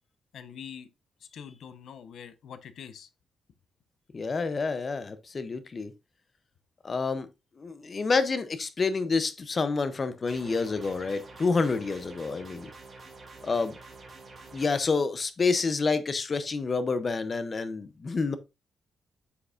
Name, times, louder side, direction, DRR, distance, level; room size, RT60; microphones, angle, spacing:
voice 1, 0.3-0.9 1.2-3.1, left 8 dB, 75° left, 0.8 m, -44 dB
voice 2, 4.1-5.9 6.8-7.3 7.6-12.7 13.4-13.8 14.5-18.4, left 4 dB, 35° left, 0.6 m, -28 dB
sound 1, 10.3-14.7, right 3 dB, 35° right, 2.5 m, -48 dB
7.9 x 5.8 x 2.5 m
wide cardioid pair, 140°, 0 cm